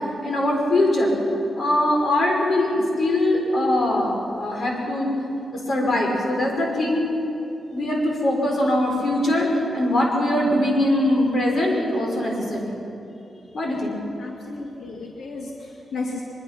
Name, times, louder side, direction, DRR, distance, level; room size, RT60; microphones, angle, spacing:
voice 1, 0.2-1.1 1.6-5.1 5.5-7.1 7.7-12.8 13.5-14.0, left 1 dB, 45° left, -1 dB, 5.7 m, -22 dB
voice 2, 14.2-16.2, left 3 dB, 75° left, 0 dB, 2.0 m, -33 dB
23.5 x 23.0 x 6.1 m, 2.8 s
wide cardioid pair, 135°, 0 cm